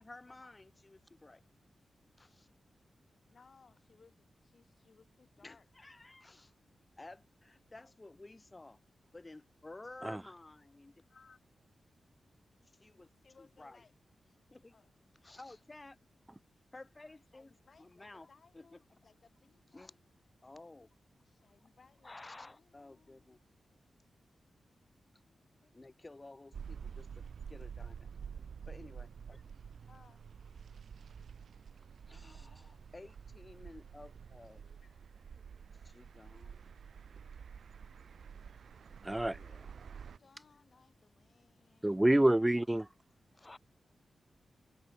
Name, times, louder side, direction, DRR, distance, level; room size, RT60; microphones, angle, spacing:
voice 1, 0.0-1.4 2.2-2.5 5.4-6.5 7.0-8.8 9.1-10.9 12.8-13.1 13.6-13.8 14.5-14.7 15.2-16.0 16.7-18.3 18.5-18.6 19.7-20.0 20.4-20.9 22.0-23.4 25.7-28.1 28.7-29.4 32.1-34.6 35.8-36.6 39.4-39.9 43.3-43.6, left 2 dB, 30° left, 5.0 m, -53 dB
voice 2, 3.3-5.7 11.1-11.4 13.2-13.9 14.7-14.9 17.3-20.0 21.2-23.4 25.3-25.9 29.9-30.3 34.4-35.0 40.2-42.8, left 5 dB, 55° left, 6.3 m, -65 dB
sound 1, 26.5-40.2, right 7 dB, 80° right, 0.7 m, -49 dB
voice 3, 39.0-39.4 41.8-42.8, right 1 dB, 15° right, 0.4 m, -27 dB
cardioid pair, 65°, 0 cm